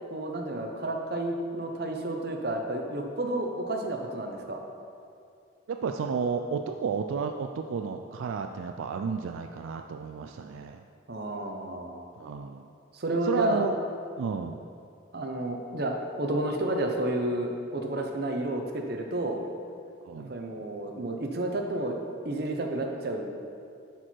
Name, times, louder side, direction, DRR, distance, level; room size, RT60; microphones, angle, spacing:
voice 1, 0.1-4.6 11.1-12.1 12.9-13.6 15.1-19.4 20.2-22.0 22.2-23.3, right 1 dB, 55° right, 2 dB, 0.8 m, -31 dB
voice 2, 5.7-10.8 12.2-12.7 13.2-13.8 14.2-14.6 20.0-20.3, right 5 dB, 85° right, 5 dB, 0.3 m, -32 dB
11.0 x 4.6 x 4.5 m, 2.4 s
head